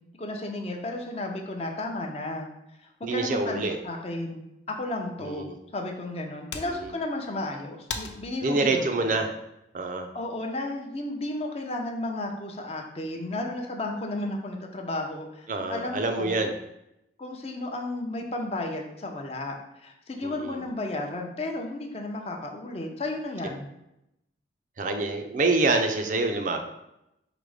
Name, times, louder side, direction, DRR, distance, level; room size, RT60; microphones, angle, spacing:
voice 1, 0.2-2.5 2.8-4.4 4.7-5.5 5.7-9.1 10.1-16.4 17.2-23.7, left 2 dB, 35° left, 2 dB, 0.5 m, -33 dB
voice 2, 3.0-3.8 5.2-5.5 6.7-6.9 8.4-9.3 9.7-10.1 15.5-16.5 20.2-20.6 24.8-26.7, right 3 dB, 45° right, 4 dB, 0.4 m, -26 dB
sound 1, 6.3-10.4, left 5 dB, 80° left, 0.5 m, -43 dB
4.9 x 2.1 x 4.8 m, 0.85 s
head